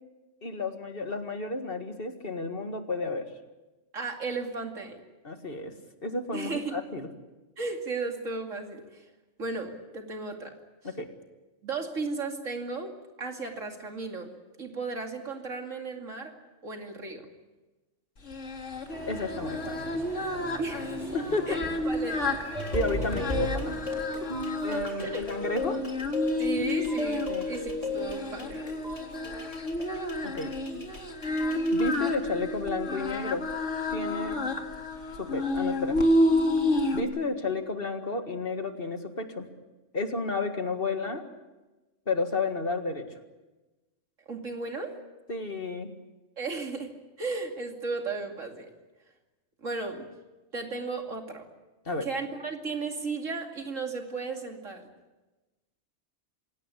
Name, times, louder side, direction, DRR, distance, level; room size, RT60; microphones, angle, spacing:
voice 1, 0.4-3.3 5.2-5.7 6.0-7.1 10.8-11.1 19.1-19.8 21.1-21.6 22.7-23.8 24.1-24.3 24.6-25.8 27.3-27.5 30.2-30.6 31.7-33.5 33.9-34.4 35.2-36.0 36.9-39.5 39.9-41.3 42.1-43.1 45.3-45.9 51.9-52.1, left 3 dB, 50° left, 6 dB, 2.0 m, -32 dB
voice 2, 3.9-5.0 6.3-6.7 7.6-9.0 9.4-10.5 11.6-12.9 13.2-14.3 14.6-16.3 16.6-17.3 20.6-20.9 21.5-21.6 21.9-22.2 24.4-24.6 25.0-25.3 26.4-28.6 44.3-45.0 46.4-48.7 49.6-50.1 50.5-51.5 52.0-54.8, right 3 dB, 90° right, 3 dB, 2.9 m, -35 dB
Singing, 18.3-37.0, left 1 dB, 75° left, 2.6 m, -30 dB
sound 1, 18.9-24.0, right 1 dB, 65° right, 4.4 m, -43 dB
sound 2, 22.5-32.1, left 2 dB, 30° left, 3.9 m, -35 dB
27.0 x 17.5 x 8.4 m, 1.1 s
omnidirectional pair, 1.3 m